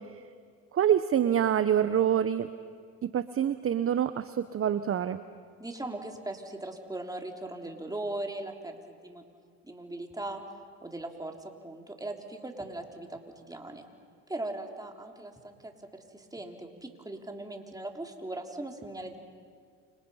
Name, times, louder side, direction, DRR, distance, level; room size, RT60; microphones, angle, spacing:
voice 1, 0.7-2.5 3.0-5.2, right 9 dB, 35° right, 13 dB, 0.9 m, -26 dB
voice 2, 5.6-9.2 9.6-10.4 10.8-11.4 11.6-13.8 14.3-19.2, right 2 dB, 10° right, 3 dB, 3.5 m, -39 dB
29.5 x 27.0 x 5.7 m, 2.1 s
supercardioid pair, 80°, 39 cm